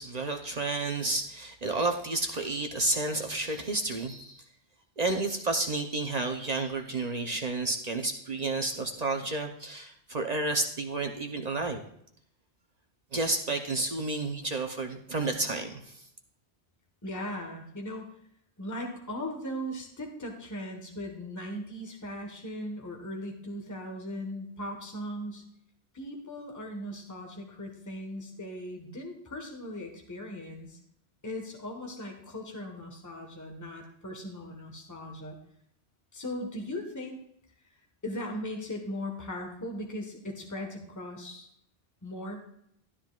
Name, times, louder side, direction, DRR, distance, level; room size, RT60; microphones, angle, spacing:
voice 1, 0.0-4.4 5.0-11.8 13.1-16.0, right 2 dB, 40° right, 4 dB, 0.8 m, -31 dB
voice 2, 17.0-18.1 18.6-25.4 25.9-30.8 31.2-35.4 36.1-37.2 38.0-41.5 42.0-42.4, left 1 dB, 15° left, 1 dB, 1.3 m, -38 dB
13.0 x 9.8 x 2.4 m, 0.70 s
omnidirectional pair, 1.1 m